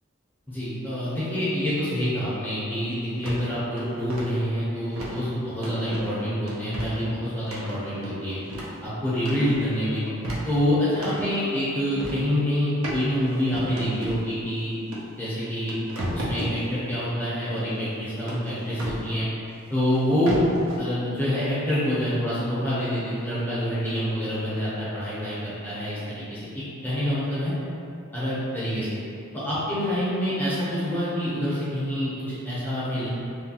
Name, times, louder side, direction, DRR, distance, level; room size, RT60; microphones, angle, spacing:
voice 1, 0.5-8.4 8.8-10.0 10.5-14.8 15.2-15.7 16.1-19.3 19.7-20.4 20.8-26.4 26.8-27.5 28.1-29.0 29.4-33.1, equal, 10° left, -11 dB, 0.5 m, -26 dB
sound 1, 3.2-3.4 3.8-4.2 5.0-5.2 5.6-6.1 6.5-7.0 7.5-8.8 9.2-9.7 10.1-11.3 12.0-12.3 12.8-13.0 13.5-14.2 14.9-15.0 15.4-16.5 18.3-19.0 19.9-20.0 20.3-20.8, right 1 dB, 80° right, 0.5 m, -33 dB
2.7 x 2.3 x 2.8 m, 2.6 s
head